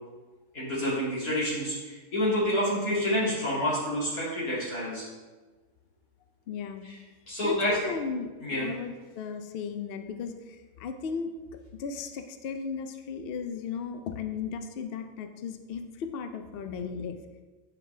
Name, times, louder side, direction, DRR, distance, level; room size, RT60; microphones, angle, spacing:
voice 1, 0.5-5.0 6.8-7.0 7.3-7.8 8.4-8.7, equal, 85° left, -8 dB, 2.9 m, -28 dB
voice 2, 6.5-6.8 7.4-10.4 10.8-11.3 11.8-17.2, left 6 dB, 60° left, 7 dB, 0.6 m, -35 dB
8.4 x 5.0 x 3.3 m, 1.3 s
omnidirectional pair, 1.5 m